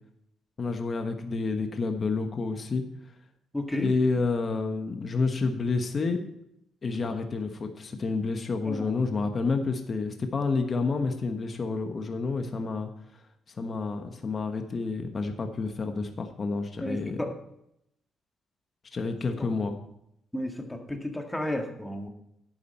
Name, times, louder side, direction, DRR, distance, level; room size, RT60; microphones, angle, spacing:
voice 1, 0.6-2.8 3.8-6.2 6.8-12.9 13.6-17.2 18.9-19.8, left 4 dB, 40° left, 5 dB, 1.2 m, -29 dB
voice 2, 3.5-3.9 7.0-7.1 8.7-9.0 16.8-17.3 20.3-22.1, left 1 dB, 5° left, 3 dB, 1.8 m, -32 dB
11.5 x 8.8 x 4.3 m, 0.78 s
cardioid pair, 90°, 0 cm